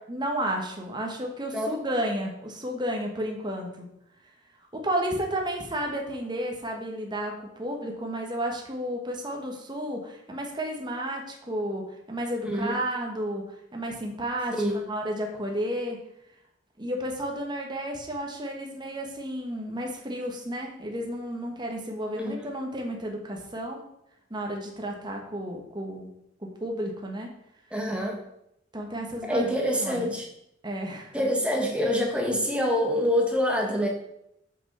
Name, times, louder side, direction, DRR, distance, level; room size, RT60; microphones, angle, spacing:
voice 1, 0.1-3.9 4.7-13.4 13.7-16.0 16.8-23.9 24.3-26.1 26.4-27.3 28.7-29.5 29.8-30.1 30.6-31.1, right 1 dB, 25° right, 1 dB, 1.3 m, -32 dB
voice 2, 12.5-12.8 14.6-14.8 22.1-22.3 27.7-28.2 29.3-30.3 31.1-33.9, equal, 5° right, 0 dB, 1.4 m, -26 dB
6.2 x 5.8 x 5.5 m, 0.80 s
head